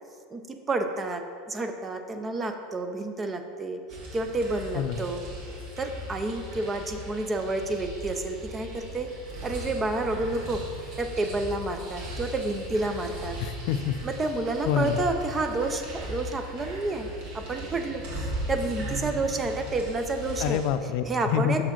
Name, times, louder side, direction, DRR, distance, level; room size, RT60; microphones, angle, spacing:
voice 1, 0.3-3.8 4.1-5.2 5.8-9.1 9.4-10.6 11.0-13.4 14.0-17.1 17.3-20.6 21.1-21.7, right 2 dB, 15° right, 7 dB, 0.5 m, -30 dB
sound 1, 3.9-20.7, equal, 55° right, 1.7 m, -38 dB
voice 2, 4.7-5.0 13.4-14.0 14.6-15.0 20.4-21.7, left 9 dB, 55° left, 10 dB, 0.4 m, -27 dB
6.4 x 4.9 x 5.8 m, 2.2 s
supercardioid pair, 160°, 0 cm